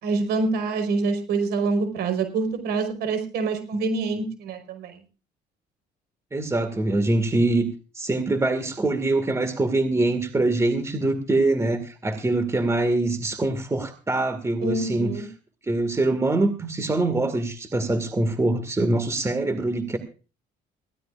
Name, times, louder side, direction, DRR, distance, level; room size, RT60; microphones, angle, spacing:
voice 1, 0.0-5.0 14.6-15.2, right 3 dB, 75° right, 6 dB, 4.8 m, -26 dB
voice 2, 6.3-7.7 8.0-15.1 15.7-20.0, right 2 dB, 15° right, 8 dB, 2.0 m, -24 dB
20.5 x 15.5 x 2.5 m, 0.36 s
cardioid pair, 110°, 17 cm